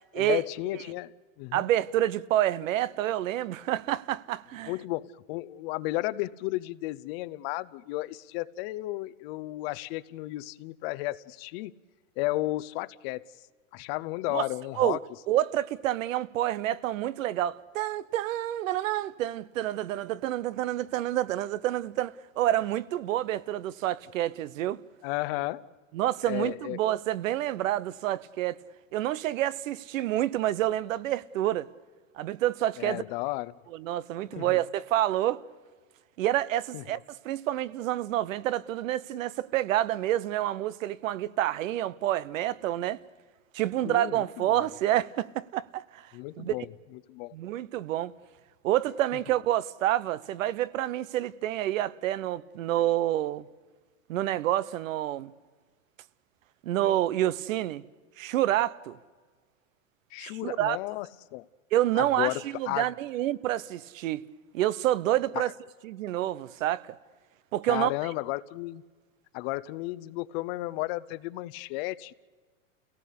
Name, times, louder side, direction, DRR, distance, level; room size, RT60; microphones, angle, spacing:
voice 1, 0.1-1.7 4.7-11.7 12.2-13.2 13.7-15.0 25.0-25.7 26.2-26.8 32.8-33.5 34.4-34.6 36.7-36.8 43.8-44.7 46.1-46.7 47.1-47.3 60.1-61.1 61.3-61.4 62.0-62.9 65.3-65.5 67.7-68.8 69.3-72.1, left 19 dB, 50° left, 0.8 m, -33 dB
voice 2, 1.5-4.7 14.3-14.4 14.8-15.0 15.3-24.8 25.9-28.6 28.9-31.7 32.1-33.0 33.7-35.4 36.2-43.0 43.5-46.0 46.4-46.5 47.3-48.1 48.6-53.5 54.1-55.3 56.6-57.8 58.2-59.0 60.2-60.8 61.7-64.3 64.5-65.5 65.8-67.0 67.5-67.9, right 13 dB, 75° right, 1.0 m, -28 dB
29.0 x 17.5 x 8.5 m
supercardioid pair, 130°, 40 cm